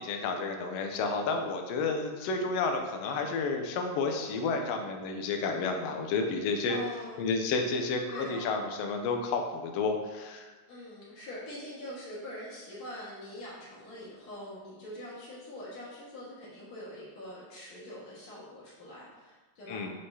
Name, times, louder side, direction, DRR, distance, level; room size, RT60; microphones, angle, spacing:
voice 1, 0.0-6.8 7.2-10.5 19.7-19.9, left 4 dB, 80° left, 4 dB, 1.4 m, -31 dB
voice 2, 6.7-7.3 8.0-8.6 10.7-19.8, left 1 dB, 65° left, -8 dB, 2.8 m, -43 dB
9.4 x 3.7 x 2.7 m, 1.3 s
omnidirectional pair, 3.5 m